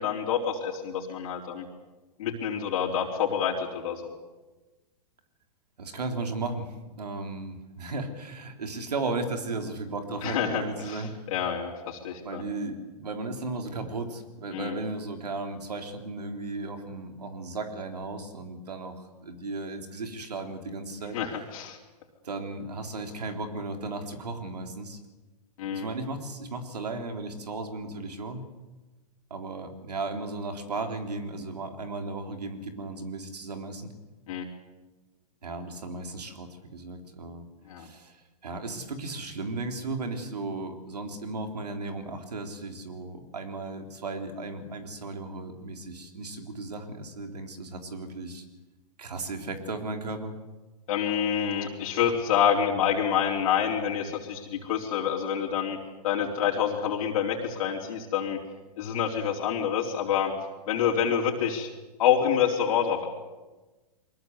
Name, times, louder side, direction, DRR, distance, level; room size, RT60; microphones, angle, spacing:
voice 1, 0.0-1.7 2.2-4.1 10.2-11.0 11.3-12.4 14.5-14.8 21.1-21.8 25.6-25.9 34.3-34.5 37.7-37.9 50.9-55.8 56.0-58.4 58.8-60.3 60.7-61.7 62.0-63.1, left 8 dB, 60° left, -1 dB, 3.9 m, -27 dB
voice 2, 5.8-6.7 7.0-11.2 12.2-21.4 22.2-25.0 25.7-28.4 29.3-33.9 35.4-37.4 37.8-48.4 49.0-50.3, right 3 dB, 85° right, 5 dB, 3.7 m, -35 dB
23.5 x 21.0 x 8.2 m, 1.2 s
hypercardioid pair, 115°, 20 cm